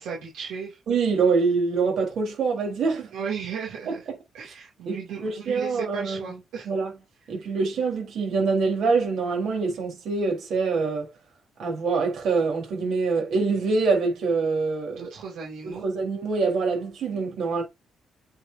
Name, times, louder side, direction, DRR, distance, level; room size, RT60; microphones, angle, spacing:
voice 1, 0.0-0.8 3.1-4.0 4.3-6.7 14.9-15.9, right 6 dB, 90° right, 2.5 m, -35 dB
voice 2, 0.9-3.1 3.9-4.0 4.9-6.4 6.6-6.9 7.3-11.1 11.6-15.1 15.6-17.6, right 4 dB, 65° right, 3.7 m, -25 dB
8.4 x 5.0 x 2.7 m
cardioid pair, 90°, 0 cm